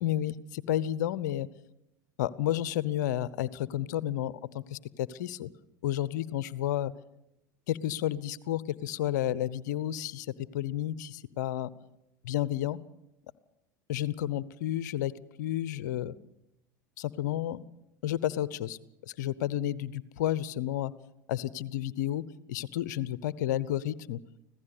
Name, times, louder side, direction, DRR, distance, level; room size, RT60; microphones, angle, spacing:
voice 1, 0.0-1.5 2.2-5.5 5.8-6.9 7.7-11.7 12.2-12.8 13.9-15.1 15.4-16.1 17.0-17.6 18.0-18.8 19.2-20.9 21.3-22.2 22.5-24.2, left 12 dB, 65° left, 18 dB, 0.8 m, -31 dB
25.0 x 16.0 x 6.8 m, 0.87 s
hypercardioid pair, 80°, 10 cm